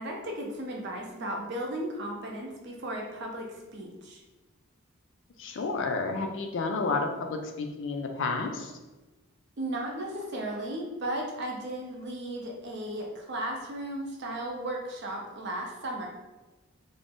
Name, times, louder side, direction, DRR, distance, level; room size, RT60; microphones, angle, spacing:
voice 1, 0.0-4.2 9.6-16.1, right 1 dB, 50° right, 0 dB, 0.5 m, -35 dB
voice 2, 5.4-8.7, left 3 dB, 55° left, 4 dB, 0.3 m, -31 dB
2.5 x 2.0 x 3.5 m, 1.2 s
head